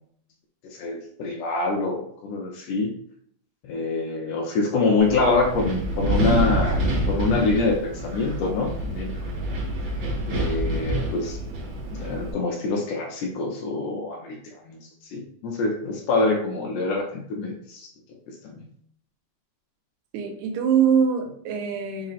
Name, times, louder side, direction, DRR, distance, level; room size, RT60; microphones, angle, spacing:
voice 1, 0.6-2.9 3.6-6.8 7.1-9.5 10.3-11.4 11.9-14.4 14.7-17.9 18.4-18.6, left 3 dB, 75° left, 1 dB, 1.7 m, -25 dB
Wind, 5.0-12.3, right 1 dB, 70° right, 1.3 m, -27 dB
voice 2, 20.1-22.1, right 7 dB, 85° right, 3 dB, 2.1 m, -23 dB
4.9 x 2.0 x 4.0 m, 0.65 s
omnidirectional pair, 3.3 m